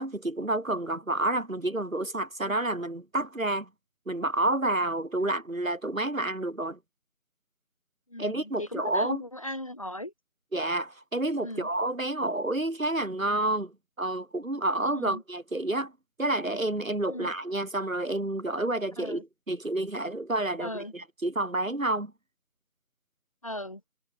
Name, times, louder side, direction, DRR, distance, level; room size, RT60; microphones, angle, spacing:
voice 1, 0.0-3.7 4.1-6.8 8.2-9.2 10.5-15.9 16.2-22.1, right 2 dB, 65° right, 6.8 m, -29 dB
voice 2, 8.1-10.1 11.4-11.7 15.0-15.2 17.1-17.3 19.0-19.2 20.6-20.9 23.4-23.8, left 1 dB, 25° left, 3.2 m, -38 dB
figure-of-eight pair, 180°, 43 cm